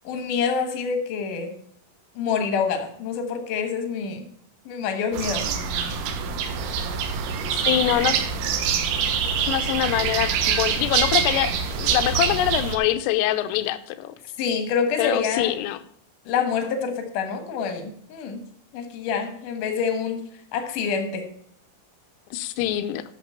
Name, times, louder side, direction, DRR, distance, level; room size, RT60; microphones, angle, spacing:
voice 1, 0.0-1.5 2.2-4.3 4.7-5.5 14.4-15.6 16.3-18.4 18.7-21.3, left 6 dB, 70° left, 6 dB, 2.0 m, -27 dB
sound 1, 5.1-12.8, right 7 dB, 80° right, 3.5 m, -25 dB
voice 2, 7.5-8.2 9.5-14.1 15.0-15.8 22.3-23.0, left 13 dB, 85° left, 10 dB, 3.2 m, -24 dB
11.5 x 6.8 x 5.6 m, 0.67 s
omnidirectional pair, 6.0 m